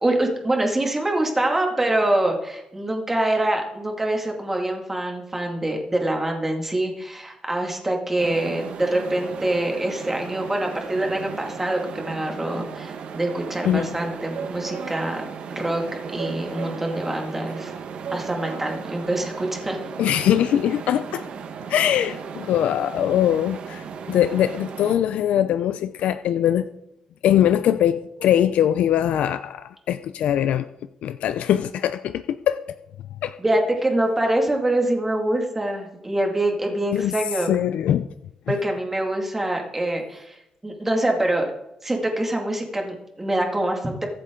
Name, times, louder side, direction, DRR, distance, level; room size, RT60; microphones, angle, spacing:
voice 1, 0.0-15.2 15.5-15.8 16.1-17.7 18.1-19.8 33.4-37.5 38.5-41.5 41.8-44.1, right 1 dB, 10° right, 1 dB, 2.3 m, -25 dB
sound 1, 8.2-25.0, right 6 dB, 60° right, 1.3 m, -35 dB
voice 2, 20.0-21.2 21.7-26.7 27.2-30.6 31.0-32.6 33.2-33.3 36.9-37.1 37.5-38.1, left 10 dB, 85° left, 12 dB, 0.5 m, -22 dB
23.5 x 8.1 x 3.8 m, 0.84 s
cardioid pair, 160°, 2 cm